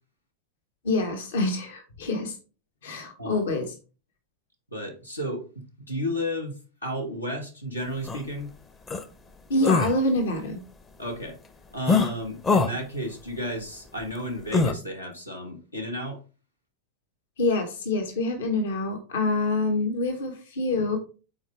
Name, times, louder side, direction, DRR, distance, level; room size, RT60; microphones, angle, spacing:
voice 1, 0.8-2.3 2.8-3.7 9.5-10.6 17.4-21.0, left 2 dB, 60° left, 6 dB, 1.2 m, -26 dB
voice 2, 4.7-8.5 11.0-11.4 11.7-16.2, equal, 85° left, 3 dB, 1.4 m, -33 dB
sound 1, 8.1-8.2 8.9-9.0 9.6-9.9 11.9-12.1 12.4-12.7 14.5-14.7, left 4 dB, 20° left, 0.7 m, -22 dB
8.7 x 4.3 x 3.2 m, 0.34 s
figure-of-eight pair, 90°, 0 cm